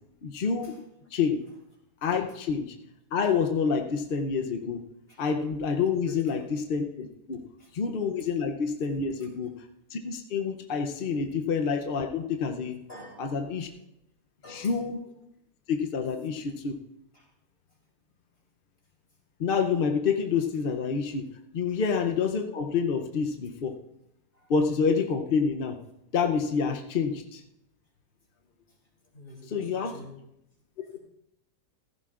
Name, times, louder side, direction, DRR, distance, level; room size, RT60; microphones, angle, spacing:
voice 1, 0.2-0.7 1.1-1.4 2.0-2.7 3.1-4.8 5.2-7.4 7.7-9.5 9.9-12.8 13.2-13.7 14.5-15.0 15.7-16.8 19.4-21.3 21.5-23.7 24.5-25.8 26.1-27.4 29.5-29.9, left 5 dB, 60° left, 4 dB, 0.5 m, -28 dB
voice 2, 6.0-6.5 7.6-7.7 9.2-9.3 12.9-13.7 14.4-14.8 17.1-17.3 21.7-21.8 24.3-24.5 28.7-28.8 29.1-30.1, left 1 dB, 35° left, -2 dB, 3.6 m, -48 dB
15.5 x 15.0 x 2.4 m, 0.83 s
omnidirectional pair, 1.8 m